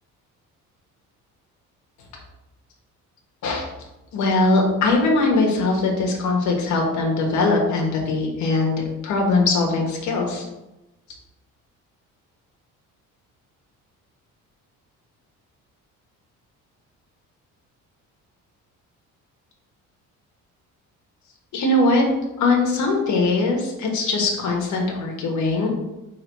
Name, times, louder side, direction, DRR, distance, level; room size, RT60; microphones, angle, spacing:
voice 1, 4.1-10.4 21.5-22.1 22.4-25.7, left 3 dB, 65° left, 0 dB, 1.6 m, -21 dB
5.5 x 3.7 x 4.6 m, 0.97 s
cardioid pair, 160°, 32 cm